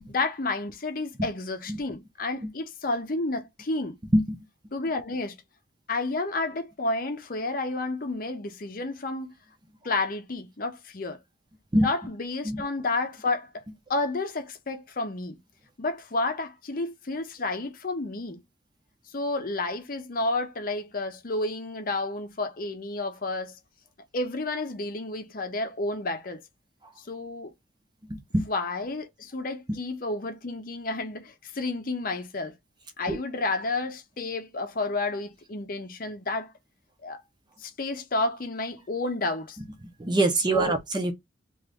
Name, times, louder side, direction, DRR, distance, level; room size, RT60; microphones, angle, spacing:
voice 1, 0.1-4.0 4.7-5.4 5.9-9.3 9.8-11.2 11.7-13.6 13.9-15.4 15.8-18.4 19.1-23.6 24.1-26.4 27.0-27.5 28.5-32.5 33.0-36.5 37.0-37.2 37.6-39.6 40.5-40.8, left 2 dB, 50° left, 0.7 m, -31 dB
voice 2, 40.0-41.1, right 1 dB, 25° right, 0.6 m, -23 dB
3.0 x 2.5 x 3.4 m
head